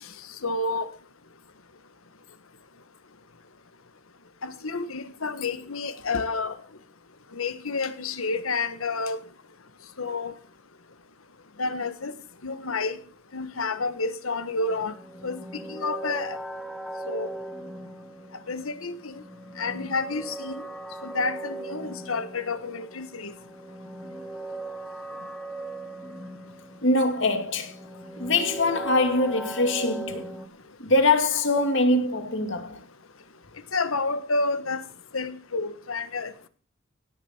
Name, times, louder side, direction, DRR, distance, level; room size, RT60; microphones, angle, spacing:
voice 1, 0.4-0.9 4.4-6.6 7.3-9.2 10.0-10.3 11.6-12.1 12.4-13.0 13.3-14.9 15.2-15.4 15.7-16.4 17.1-17.3 18.5-19.2 19.6-20.6 21.0-23.3 33.7-34.8 35.1-36.5, left 3 dB, 90° left, 1.5 m, -29 dB
sound 1, 14.7-30.5, right 2 dB, 5° left, 1.3 m, -39 dB
voice 2, 26.8-27.8 28.2-30.3 30.8-32.8, left 2 dB, 60° left, 2.5 m, -23 dB
17.5 x 12.5 x 4.6 m
head